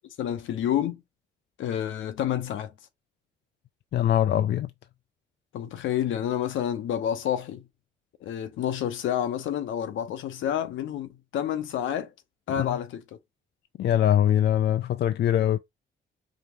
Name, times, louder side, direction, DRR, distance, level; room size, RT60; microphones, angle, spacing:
voice 1, 0.2-1.0 1.6-2.7 5.5-7.6 8.2-12.1 12.5-13.0, left 10 dB, 75° left, 0.9 m, -29 dB
voice 2, 3.9-4.7 12.6-12.8 13.8-15.6, left 11 dB, 60° left, 0.4 m, -22 dB
5.2 x 2.5 x 3.0 m
cardioid pair, 90°, 20 cm